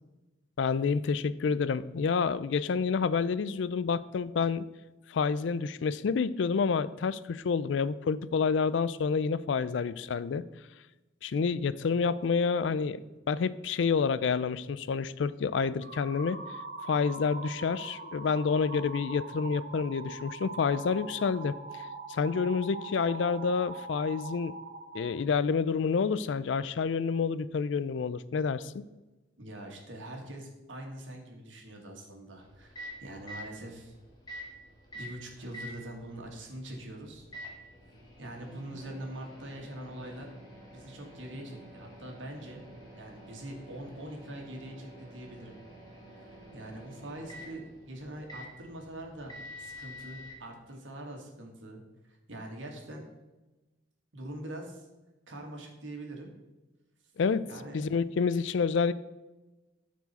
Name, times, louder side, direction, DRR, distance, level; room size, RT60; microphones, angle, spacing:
voice 1, 0.6-4.7 5.1-10.4 11.2-16.4 16.8-21.6 22.1-24.5 24.9-28.8 57.2-57.5 57.7-58.9, left 5 dB, 70° left, 16 dB, 0.4 m, -28 dB
sound 1, 15.8-25.1, right 3 dB, 50° right, 1.6 m, -42 dB
voice 2, 29.4-33.9 34.4-34.6 34.9-37.3 38.2-40.3 40.7-42.7 43.0-45.6 46.5-51.8 52.1-53.0 54.1-54.9 55.3-56.3 57.5-57.8, right 1 dB, 80° right, 1 dB, 1.8 m, -43 dB
Microwave oven, 32.3-50.4, equal, 20° left, 1.7 m, -48 dB
13.0 x 4.6 x 4.1 m, 1.1 s
head